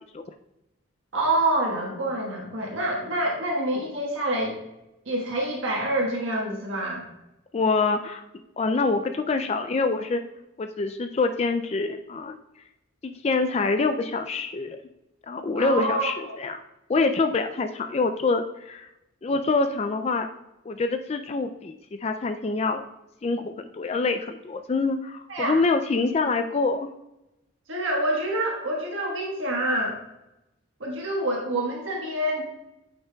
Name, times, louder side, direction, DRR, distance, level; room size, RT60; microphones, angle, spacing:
voice 1, 1.1-4.6 5.0-7.0 15.5-16.1 25.3-25.6 27.7-30.0 30.8-32.5, right 1 dB, 75° right, -2 dB, 1.4 m, -26 dB
voice 2, 7.5-8.2 8.6-10.2 10.6-12.4 13.0-14.8 15.3-16.6 16.9-18.9 19.2-20.3 20.7-22.8 23.2-26.9, left 3 dB, 30° left, 7 dB, 0.3 m, -25 dB
9.5 x 5.7 x 2.3 m, 0.94 s
head